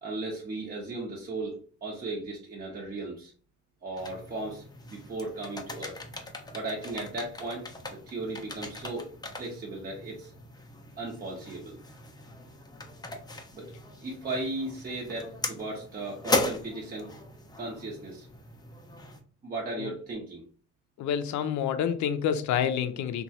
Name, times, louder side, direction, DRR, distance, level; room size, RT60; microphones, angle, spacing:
voice 1, 0.0-3.3 3.8-6.0 6.5-9.1 9.4-10.3 11.0-11.8 13.5-13.7 14.0-17.1 17.6-18.3 19.4-20.4, right 2 dB, 30° right, -3 dB, 0.7 m, -36 dB
sound 1, 4.0-19.2, left 2 dB, 15° left, 0.5 m, -38 dB
voice 2, 21.0-23.2, left 8 dB, 70° left, 9 dB, 0.4 m, -28 dB
2.9 x 2.2 x 2.7 m, 0.42 s
cardioid pair, 90°, 30 cm